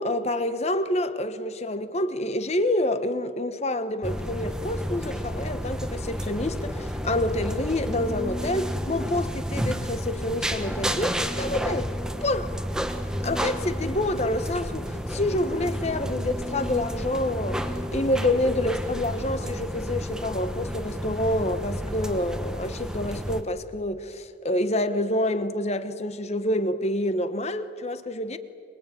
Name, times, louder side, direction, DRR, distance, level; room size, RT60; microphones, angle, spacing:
voice 1, 0.0-11.9 12.2-12.6 13.2-17.6 17.9-28.4, left 1 dB, 35° left, 1.1 m, -27 dB
sound 1, 4.0-23.4, equal, 5° right, 1.2 m, -31 dB
25.5 x 22.5 x 9.0 m
head